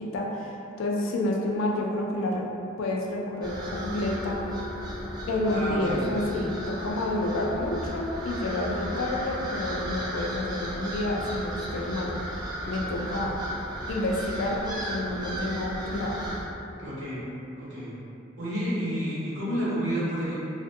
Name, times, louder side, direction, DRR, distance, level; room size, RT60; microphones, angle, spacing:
voice 1, 0.0-2.5 2.8-4.6 5.3-12.2 12.7-13.3 13.9-16.3, left 1 dB, 80° left, -1 dB, 0.4 m, -29 dB
sound 1, 3.4-16.4, equal, 20° right, 0.4 m, -35 dB
voice 2, 5.4-6.1 16.8-17.2 17.5-17.9 18.4-20.3, equal, 65° right, -10 dB, 0.8 m, -30 dB
2.5 x 2.1 x 2.6 m, 2.7 s
head